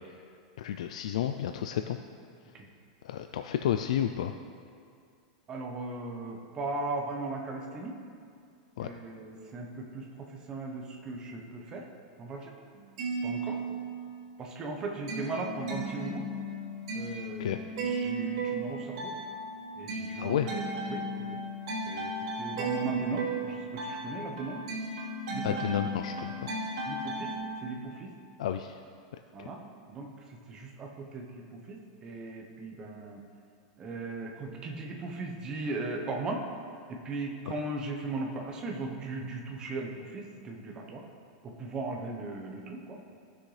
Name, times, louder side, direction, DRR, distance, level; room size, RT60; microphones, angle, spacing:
voice 1, 0.6-2.0 3.0-4.3 8.8-8.9 17.4-17.6 20.2-20.5 25.4-26.5 28.4-28.8 29.4-29.5 37.5-37.6, left 10 dB, 80° left, 7 dB, 0.4 m, -31 dB
voice 2, 5.5-8.0 8.8-11.9 12.2-12.5 13.2-13.6 14.4-16.2 16.9-19.1 19.8-20.6 20.9-21.4 21.9-22.1 22.4-24.6 25.3-25.5 26.9-27.4 27.6-28.1 29.3-29.6 29.9-33.2 33.8-36.4 36.9-41.0 41.4-43.0, right 2 dB, 20° right, 1 dB, 1.0 m, -37 dB
sound 1, 12.7-14.2 14.5-27.4, right 2 dB, 60° right, 2.4 m, -35 dB
15.5 x 6.3 x 3.3 m, 2.3 s
supercardioid pair, 160°, 4 cm